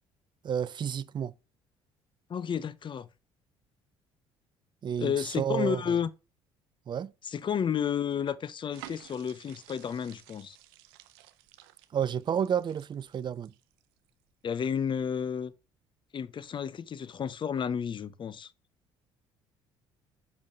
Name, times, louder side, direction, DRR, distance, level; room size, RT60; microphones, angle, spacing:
voice 1, 0.4-1.3 4.8-6.0 6.9-7.1 11.9-13.5, right 8 dB, 40° right, 0.4 m, -31 dB
voice 2, 2.3-3.1 5.0-6.1 7.3-10.6 14.4-15.5 16.1-18.5, left 8 dB, 40° left, 0.7 m, -31 dB
sound 1, 8.7-14.1 14.5-14.7, right 14 dB, 85° right, 0.6 m, -52 dB
5.4 x 5.3 x 4.7 m
supercardioid pair, 65°, 12 cm